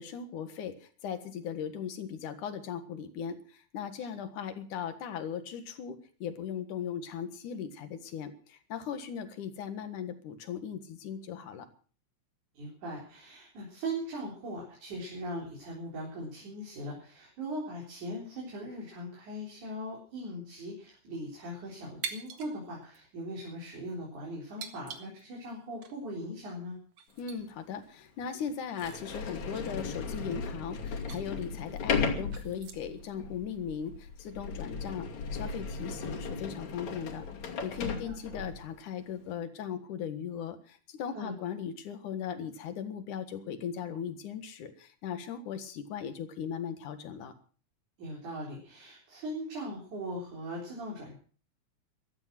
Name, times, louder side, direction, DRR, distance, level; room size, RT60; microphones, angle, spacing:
voice 1, 0.0-11.7 27.2-37.3 37.6-47.3, left 8 dB, 90° left, 9 dB, 3.1 m, -38 dB
voice 2, 12.5-26.8 37.8-38.2 41.1-41.3 48.0-51.2, right 1 dB, 80° right, -3 dB, 5.5 m, -40 dB
sound 1, 22.0-22.5 22.8-23.0 23.7-23.9 24.6-25.5 25.8-25.9 26.5-26.6 26.9-27.4 27.8-27.9 28.3-30.5 30.9-31.2 31.7-33.0, right 7 dB, 60° right, 2.7 m, -45 dB
Sliding door, 27.4-27.5 28.2-28.3 28.8-38.7, left 5 dB, 70° left, 4.0 m, -36 dB
15.5 x 13.0 x 6.0 m, 0.42 s
omnidirectional pair, 3.4 m